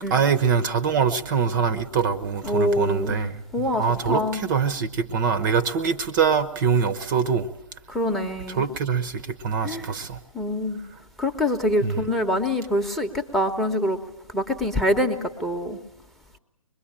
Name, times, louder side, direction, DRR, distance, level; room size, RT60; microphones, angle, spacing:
voice 1, 0.1-7.5 8.5-10.2 11.8-12.0, right 6 dB, 35° right, 1.0 m, -24 dB
voice 2, 2.4-3.2 3.5-4.4 7.9-8.6 9.6-9.9 10.3-10.8 11.2-14.0 14.3-15.8, left 1 dB, ahead, 1.1 m, -25 dB
25.0 x 21.5 x 8.8 m
figure-of-eight pair, 135°, 18 cm